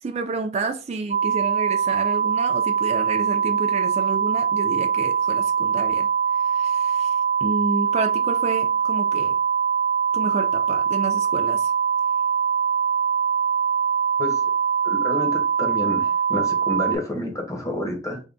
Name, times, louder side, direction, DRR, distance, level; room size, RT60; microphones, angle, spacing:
voice 1, 0.0-6.1 6.3-9.4 10.1-11.7, right 3 dB, 40° right, 0.4 m, -30 dB
sound 1, 1.1-17.0, right 7 dB, 80° left, 0.7 m, -22 dB
voice 2, 14.8-18.2, left 1 dB, 20° left, 0.8 m, -29 dB
3.5 x 2.1 x 3.7 m
head